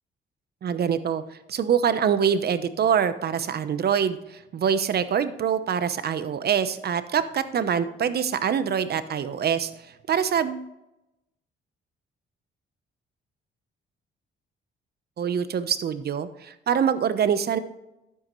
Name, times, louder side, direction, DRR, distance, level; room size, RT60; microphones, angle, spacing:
voice 1, 0.6-1.2 1.5-9.7 10.1-10.6 15.2-17.6, right 8 dB, 55° right, 12 dB, 0.9 m, -24 dB
12.0 x 9.4 x 3.2 m, 0.92 s
cardioid pair, 90°, 20 cm